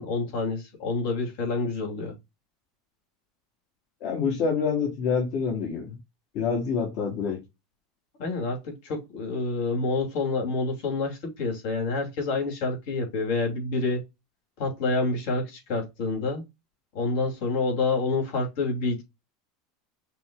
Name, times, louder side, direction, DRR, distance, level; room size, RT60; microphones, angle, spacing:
voice 1, 0.0-2.1 8.2-14.0 14.6-16.4 16.9-19.0, left 3 dB, 65° left, 2.5 m, -28 dB
voice 2, 4.0-6.0 6.3-7.4, left 5 dB, 45° left, 1.8 m, -27 dB
5.8 x 2.3 x 3.8 m
supercardioid pair, 160°, 0 cm